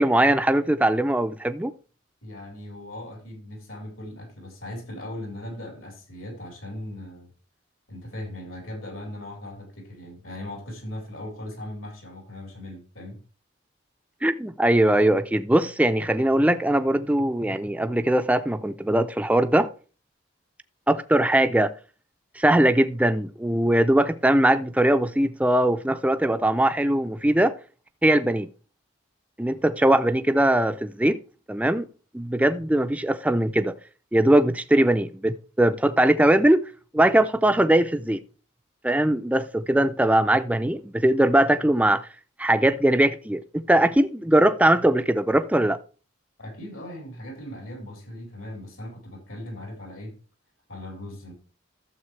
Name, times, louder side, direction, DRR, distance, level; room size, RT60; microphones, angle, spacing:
voice 1, 0.0-1.7 14.2-19.7 20.9-21.7 22.4-27.6 28.0-28.5 29.4-31.2 31.5-31.9 32.1-33.8 34.1-36.7 36.9-38.2 38.8-42.1 42.4-45.8, right 1 dB, 5° right, 0.4 m, -21 dB
voice 2, 2.2-7.3 7.9-13.2 46.4-50.2 50.7-51.3, left 1 dB, 80° left, 4.2 m, -38 dB
12.5 x 7.2 x 3.2 m
head